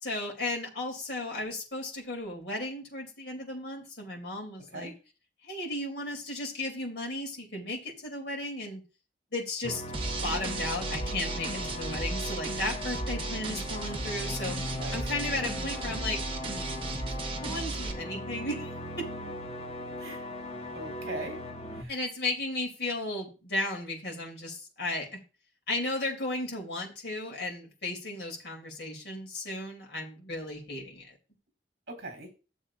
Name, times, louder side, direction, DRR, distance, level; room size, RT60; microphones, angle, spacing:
voice 1, 0.0-4.9 5.4-8.8 9.3-9.8 10.2-14.6 14.9-16.2 17.4-19.0 21.9-25.2 25.7-31.2, left 2 dB, 70° left, 0 dB, 3.2 m, -35 dB
sound 1, 9.6-21.8, left 1 dB, 35° left, 1.1 m, -38 dB
sound 2, 9.9-17.9, right 3 dB, 30° right, 1.0 m, -35 dB
voice 2, 14.7-15.1 20.0-20.2 20.7-21.4 21.7-21.9 31.9-32.3, right 1 dB, 60° right, 5 dB, 3.5 m, -40 dB
12.0 x 7.4 x 2.5 m, 0.33 s
head